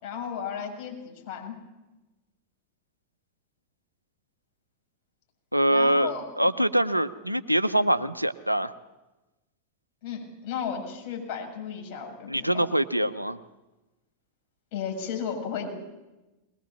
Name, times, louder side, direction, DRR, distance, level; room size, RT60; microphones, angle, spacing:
voice 1, 0.0-1.6 5.7-6.2 10.0-12.6 14.7-15.7, left 7 dB, 45° left, 1 dB, 7.0 m, -34 dB
voice 2, 5.5-6.1 6.4-8.7 12.3-13.4, right 1 dB, 90° right, 14 dB, 0.7 m, -24 dB
21.0 x 20.5 x 7.4 m, 1.1 s
figure-of-eight pair, 90°, 0 cm